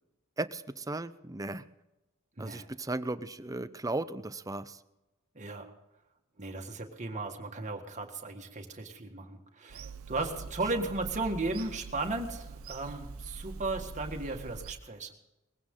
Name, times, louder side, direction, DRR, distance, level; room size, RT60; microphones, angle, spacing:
voice 1, 0.4-1.6 2.4-4.8, right 2 dB, 15° right, 13 dB, 0.6 m, -36 dB
voice 2, 5.4-5.7 6.4-15.1, right 2 dB, 35° right, 3 dB, 1.8 m, -35 dB
Bird vocalization bird call bird song / Telephone, 9.7-14.7, right 4 dB, 85° right, 0.8 m, -44 dB
20.5 x 16.0 x 3.8 m, 0.95 s
head